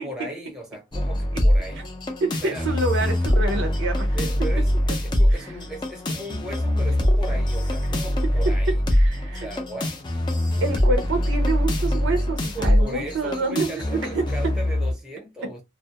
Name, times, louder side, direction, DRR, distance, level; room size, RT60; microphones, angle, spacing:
voice 1, 0.0-1.8 2.4-2.7 4.1-8.8 9.3-9.9 10.5-11.0 12.5-15.6, right 1 dB, 5° right, 0.8 m, -37 dB
sound 1, 0.9-14.9, left 1 dB, 25° left, 0.5 m, -23 dB
voice 2, 2.2-4.2 8.7-9.5 10.6-14.3, right 3 dB, 65° right, 0.6 m, -27 dB
2.2 x 2.0 x 2.8 m
head